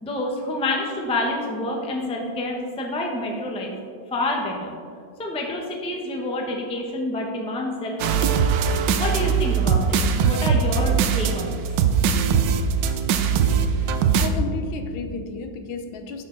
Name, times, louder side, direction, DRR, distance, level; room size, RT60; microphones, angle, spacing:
voice 1, 0.0-3.7 4.1-4.7 5.2-8.4 9.0-11.6, left 1 dB, 5° left, 0 dB, 0.5 m, -28 dB
I Wish (loop), 8.0-14.3, right 6 dB, 70° right, 1.2 m, -21 dB
voice 2, 14.2-16.2, left 4 dB, 75° left, 6 dB, 1.5 m, -32 dB
10.5 x 7.0 x 3.9 m, 2.3 s
omnidirectional pair, 2.2 m